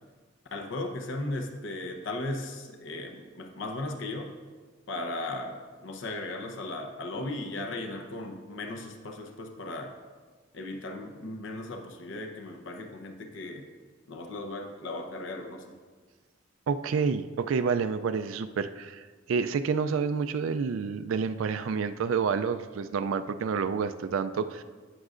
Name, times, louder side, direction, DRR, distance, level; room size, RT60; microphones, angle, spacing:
voice 1, 0.5-4.3 4.9-9.9 10.5-13.7 14.1-15.8, left 2 dB, 65° left, 4 dB, 0.8 m, -36 dB
voice 2, 16.7-24.6, right 5 dB, 80° right, 10 dB, 0.4 m, -29 dB
17.5 x 6.4 x 2.5 m, 1.5 s
head